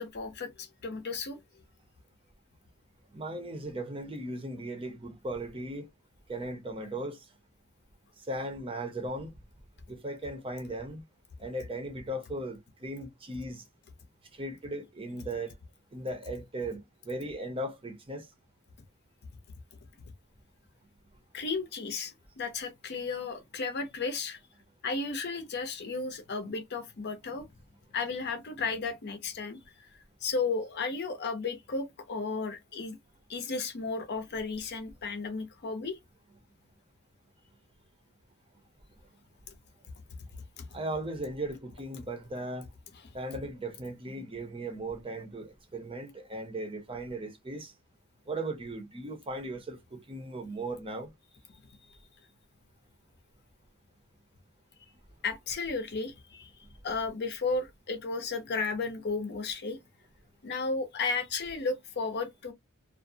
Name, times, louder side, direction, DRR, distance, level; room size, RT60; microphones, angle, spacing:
voice 1, 0.0-1.4 21.3-24.4 24.8-27.5 27.9-29.6 30.2-33.0 33.3-36.0 40.6-40.7 55.2-56.5 56.8-59.8 60.4-62.5, left 4 dB, 50° left, 0.6 m, -34 dB
voice 2, 3.1-5.9 6.3-7.2 8.3-9.3 9.9-11.0 11.4-13.6 14.4-15.5 15.9-16.8 17.1-18.3 40.7-42.6 43.1-47.7 48.3-51.1, right 1 dB, 25° right, 0.7 m, -37 dB
2.4 x 2.1 x 2.6 m
head